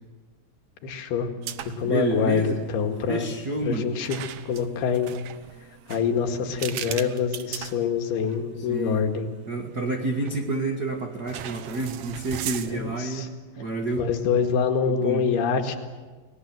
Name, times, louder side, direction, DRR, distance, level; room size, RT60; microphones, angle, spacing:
voice 1, 0.8-1.3 1.8-3.3 3.7-4.2 4.5-5.1 5.9-9.3 12.7-13.3 14.0-15.8, left 6 dB, 80° left, 4 dB, 3.9 m, -25 dB
sound 1, 1.4-2.0 2.2-2.5 4.0-8.4 8.9-9.0 10.2-10.7 11.3-13.0, right 10 dB, 80° right, 1.6 m, -37 dB
voice 2, 1.8-2.6 3.1-3.9 8.6-9.0 9.5-13.3 13.5-14.1 14.8-15.2, right 3 dB, 40° right, 2 dB, 1.6 m, -29 dB
30.0 x 20.0 x 7.7 m, 1.4 s
omnidirectional pair, 4.6 m